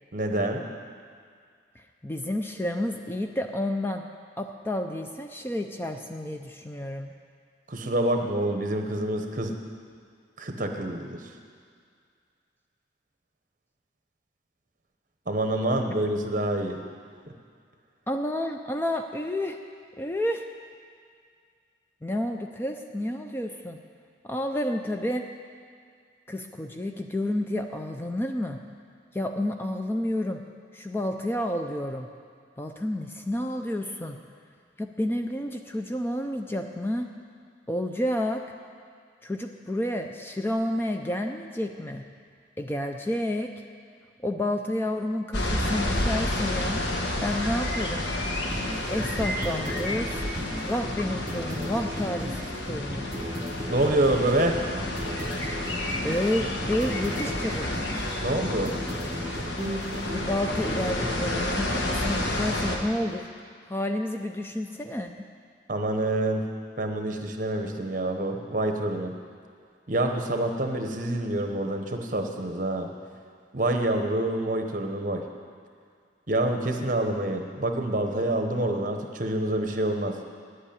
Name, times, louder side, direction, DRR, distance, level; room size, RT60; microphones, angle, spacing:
voice 1, 0.1-0.6 7.7-9.5 10.4-11.2 15.3-16.8 53.7-54.6 58.2-58.7 65.7-66.5 66.8-69.1 69.9-72.9 73.5-75.2 76.3-80.2, right 1 dB, 45° right, 4 dB, 1.0 m, -27 dB
voice 2, 1.8-4.0 4.4-7.1 18.1-19.6 20.0-20.4 22.0-23.8 24.2-25.3 26.3-28.6 29.1-30.4 30.7-32.1 32.6-34.2 34.8-37.1 37.7-38.4 39.2-42.0 42.6-43.5 44.2-46.8 47.2-48.0 48.9-50.2 50.6-52.4 52.6-53.0 56.0-57.7 60.1-63.2 63.7-65.1, left 1 dB, 15° left, 5 dB, 0.4 m, -30 dB
sound 1, 45.3-62.8, left 1 dB, 80° left, 1.3 m, -30 dB
sound 2, 48.5-61.4, equal, 20° right, 1.3 m, -35 dB
9.9 x 8.3 x 8.7 m, 2.1 s
head